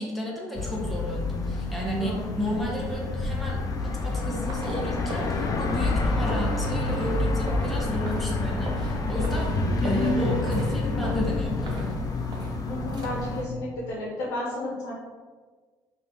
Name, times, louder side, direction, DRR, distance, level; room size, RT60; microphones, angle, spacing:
voice 1, 0.0-3.6 3.8-9.5 9.8-11.9, equal, ahead, -4 dB, 1.1 m, -33 dB
sound 1, 0.5-13.4, left 2 dB, 40° left, 0.5 m, -28 dB
sound 2, 3.9-13.1, right 1 dB, 50° right, 0.7 m, -42 dB
sound 3, 6.0-9.6, right 1 dB, 65° right, 1.1 m, -42 dB
voice 2, 12.6-14.9, left 1 dB, 80° left, -4 dB, 0.8 m, -32 dB
3.2 x 2.7 x 3.6 m, 1.5 s
supercardioid pair, 75°, 9 cm